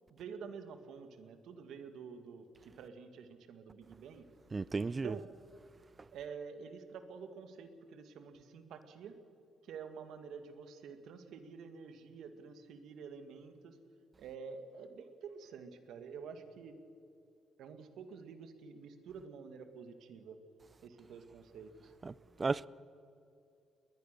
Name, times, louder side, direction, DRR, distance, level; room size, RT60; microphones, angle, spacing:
voice 1, 0.1-2.5 2.8-4.3 4.8-5.3 6.1-9.2 9.6-13.8 14.2-16.8 17.6-20.4 20.8-21.9, right 6 dB, 80° right, 1.9 m, -49 dB
voice 2, 4.5-5.1 22.1-22.2 22.4-22.7, right 4 dB, 30° right, 0.5 m, -33 dB
21.0 x 20.0 x 6.7 m
cardioid pair, 90°, 0 cm